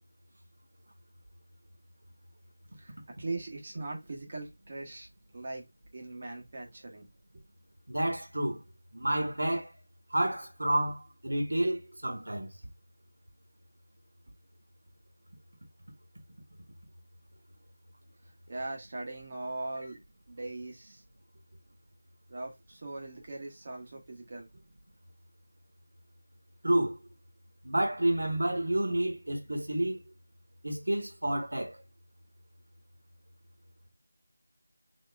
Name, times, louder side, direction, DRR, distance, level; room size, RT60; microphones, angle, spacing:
voice 1, 2.7-5.1 5.3-5.6 5.9-7.1 7.3-7.4 18.5-20.0 20.3-21.0 22.3-24.6, right 2 dB, 30° right, 1.3 m, -40 dB
voice 2, 7.9-8.6 8.9-9.7 10.1-12.5 26.6-27.0 27.6-30.0 30.6-31.8, right 1 dB, 70° right, 1.3 m, -29 dB
3.6 x 2.9 x 3.5 m
figure-of-eight pair, 175°, 0 cm